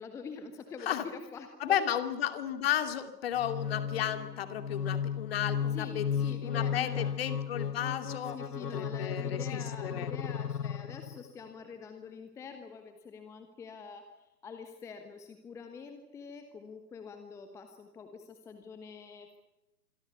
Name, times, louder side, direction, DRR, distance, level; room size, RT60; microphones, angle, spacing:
voice 1, 0.0-1.8 5.7-7.1 8.3-14.1 14.4-19.4, left 5 dB, 5° left, 7 dB, 1.1 m, -46 dB
voice 2, 1.6-8.4 8.7-10.1, left 10 dB, 35° left, 9 dB, 2.7 m, -33 dB
sound 1, 3.4-11.3, left 7 dB, 70° left, 1.4 m, -35 dB
26.5 x 23.0 x 6.9 m, 0.96 s
figure-of-eight pair, 135°, 49 cm